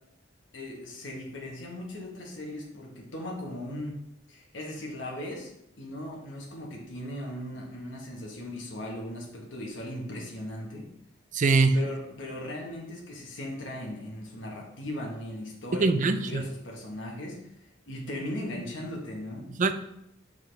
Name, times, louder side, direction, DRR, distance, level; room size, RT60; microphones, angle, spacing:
voice 1, 0.5-4.0 4.3-5.5 5.8-10.9 11.7-19.5, left 1 dB, 70° left, -1 dB, 1.3 m, -38 dB
voice 2, 11.3-11.8 15.8-16.4 19.6-19.7, right 3 dB, 40° right, 10 dB, 0.4 m, -22 dB
6.5 x 4.8 x 3.4 m, 0.79 s
head